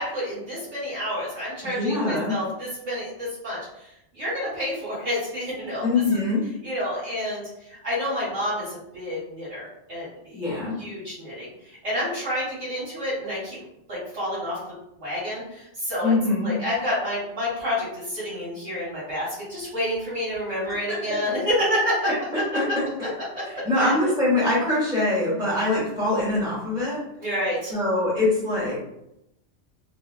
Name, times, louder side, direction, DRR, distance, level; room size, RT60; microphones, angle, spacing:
voice 1, 0.0-5.8 6.6-10.4 10.8-13.6 13.9-14.6 15.0-16.1 16.4-22.0 23.5-24.1 27.2-27.7, equal, 65° right, -8 dB, 1.6 m, -29 dB
voice 2, 1.6-2.3 5.8-6.4 10.3-10.8 16.0-16.5 20.9-21.3 22.1-22.2 22.5-23.1 23.4-27.0 27.7-28.8, left 2 dB, 5° right, -9 dB, 1.3 m, -24 dB
3.3 x 2.3 x 2.3 m, 0.83 s
omnidirectional pair, 1.3 m